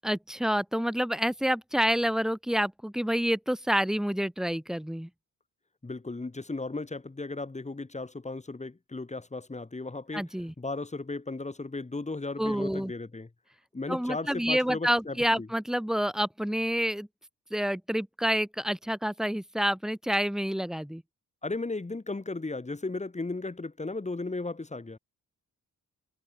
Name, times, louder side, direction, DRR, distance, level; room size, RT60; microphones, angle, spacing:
voice 1, 0.0-5.1 10.1-10.5 12.4-12.9 13.9-17.1 17.5-21.0, equal, ahead, 0.9 m, -28 dB
voice 2, 5.8-10.2 10.6-13.3 13.7-15.5 21.4-25.0, left 3 dB, 20° left, 5.4 m, -35 dB
wide cardioid pair, 135°, 36 cm